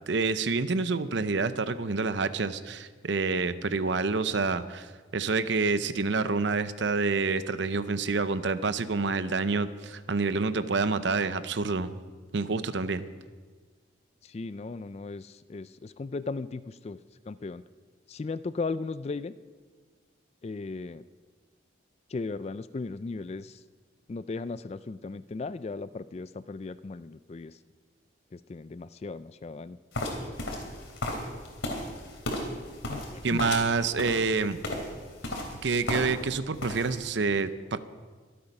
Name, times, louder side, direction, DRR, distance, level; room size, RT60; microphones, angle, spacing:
voice 1, 0.1-11.9 12.3-13.0 33.2-34.6 35.6-37.8, right 4 dB, 65° right, 13 dB, 0.7 m, -28 dB
voice 2, 14.2-17.0 17.3-17.6 18.1-19.3 20.4-21.0 22.1-23.6 24.1-27.6 28.3-29.8 32.9-33.5, left 3 dB, 30° left, 16 dB, 0.3 m, -36 dB
sound 1, 29.9-36.3 36.6-37.1, left 1 dB, 85° left, 3.2 m, -35 dB
23.5 x 8.7 x 5.4 m, 1.5 s
head